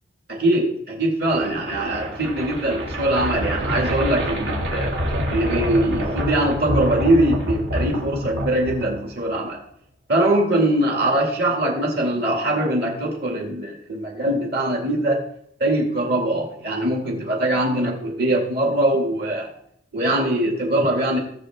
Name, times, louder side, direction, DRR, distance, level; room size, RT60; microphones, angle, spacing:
voice 1, 0.3-4.9 5.3-9.6 10.1-15.2 15.6-19.5 19.9-21.2, right 1 dB, 60° right, 0 dB, 2.4 m, -22 dB
sound 1, 1.3-9.3, equal, 85° right, 2.3 m, -27 dB
17.0 x 7.0 x 3.7 m, 0.72 s
head